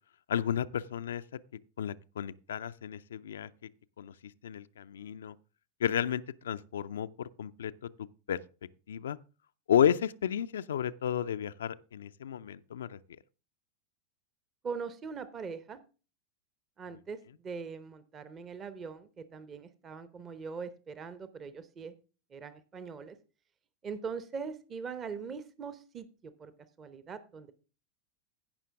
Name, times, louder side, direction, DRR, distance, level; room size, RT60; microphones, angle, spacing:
voice 1, 0.3-1.2 1.8-3.5 4.0-4.1 4.4-5.3 5.8-7.7 8.3-8.4 8.9-9.2 9.7-13.0, left 9 dB, 65° left, 0.4 m, -32 dB
voice 2, 14.6-15.8 16.8-17.2 17.4-21.9 22.3-23.2 23.8-26.5 26.8-27.5, right 5 dB, 25° right, 0.8 m, -41 dB
16.0 x 5.7 x 3.6 m
figure-of-eight pair, 90°, 0 cm